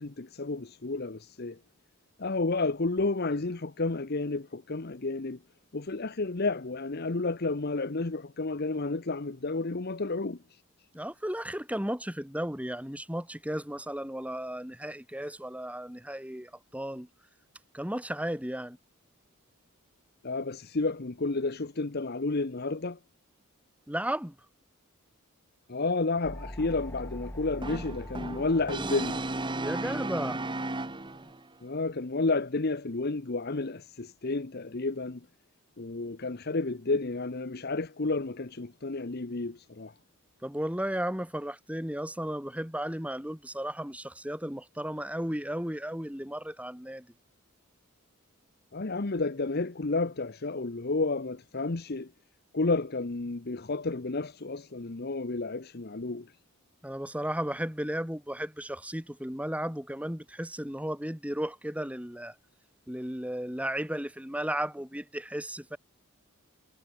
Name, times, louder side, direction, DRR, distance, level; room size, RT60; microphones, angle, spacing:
voice 1, 0.0-1.6 2.2-5.4 5.7-10.4 20.2-23.0 25.7-29.2 31.6-35.3 35.8-39.9 48.7-52.1 52.5-56.3, left 3 dB, 50° left, 0.9 m, -31 dB
voice 2, 10.9-17.1 17.7-18.8 23.9-24.3 29.6-30.5 40.4-47.1 56.8-62.3 62.9-65.8, right 1 dB, 5° right, 3.3 m, -34 dB
sound 1, 26.2-31.3, equal, 10° left, 4.2 m, -44 dB
Brass instrument, 27.6-31.4, right 2 dB, 20° right, 1.4 m, -34 dB
head